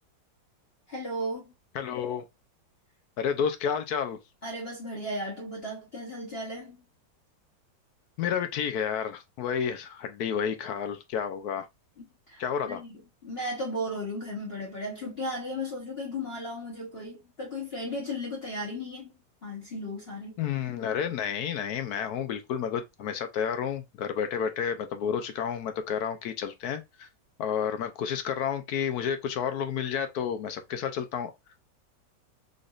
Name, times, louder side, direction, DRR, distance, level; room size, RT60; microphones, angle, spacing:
voice 1, 0.9-1.5 4.4-6.8 12.0-19.1 19.4-20.4, left 1 dB, 40° left, 1.0 m, -35 dB
voice 2, 1.7-2.2 3.2-4.2 8.2-11.7 12.4-12.8 20.4-27.1 27.4-31.3, left 8 dB, 70° left, 1.0 m, -30 dB
3.9 x 3.3 x 2.4 m
omnidirectional pair, 2.0 m